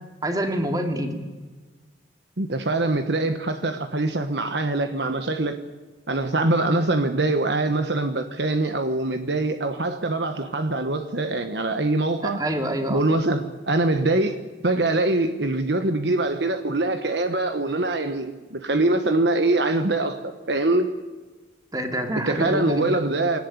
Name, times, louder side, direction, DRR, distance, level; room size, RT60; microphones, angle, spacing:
voice 1, 0.2-1.2 12.2-13.0 21.7-23.0, right 1 dB, 20° right, 5 dB, 2.6 m, -26 dB
voice 2, 2.4-5.6 6.1-12.4 12.9-20.9 22.1-23.4, right 2 dB, 60° right, 8 dB, 1.3 m, -23 dB
22.0 x 18.0 x 9.7 m, 1.3 s
head